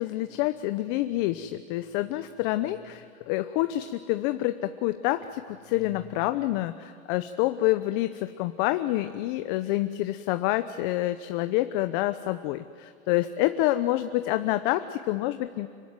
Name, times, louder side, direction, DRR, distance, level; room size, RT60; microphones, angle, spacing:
voice 1, 0.0-15.7, left 15 dB, 40° left, 10 dB, 0.9 m, -27 dB
26.0 x 22.5 x 9.3 m, 2.3 s
hypercardioid pair, 140°, 40 cm